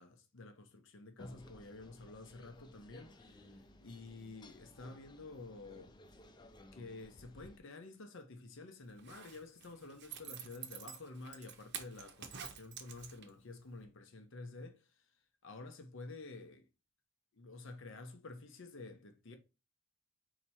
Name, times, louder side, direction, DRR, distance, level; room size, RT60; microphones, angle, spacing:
voice 1, 0.0-3.5 3.8-5.9 6.7-14.8 15.4-16.6 17.3-19.4, left 3 dB, 65° left, 0.8 m, -50 dB
sound 1, 1.2-7.6, left 1 dB, 20° left, 0.4 m, -58 dB
Zipper (clothing), 8.9-13.5 13.8-13.9, right 8 dB, 55° right, 0.7 m, -48 dB
4.4 x 2.9 x 4.1 m
head